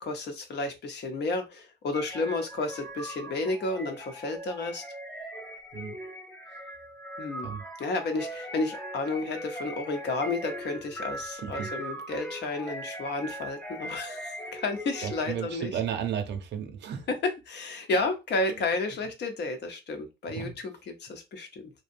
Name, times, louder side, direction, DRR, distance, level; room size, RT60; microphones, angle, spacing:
voice 1, 0.0-4.8 7.2-7.5 7.8-15.7 17.5-21.7, left 3 dB, 60° left, 0.8 m, -32 dB
sound 1, 1.9-15.6, right 1 dB, 5° left, 0.7 m, -40 dB
voice 2, 11.3-11.7 15.0-17.1 17.9-18.0 18.5-18.6 20.3-20.6, right 8 dB, 60° right, 0.6 m, -34 dB
2.7 x 2.1 x 2.5 m
cardioid pair, 90°, 20 cm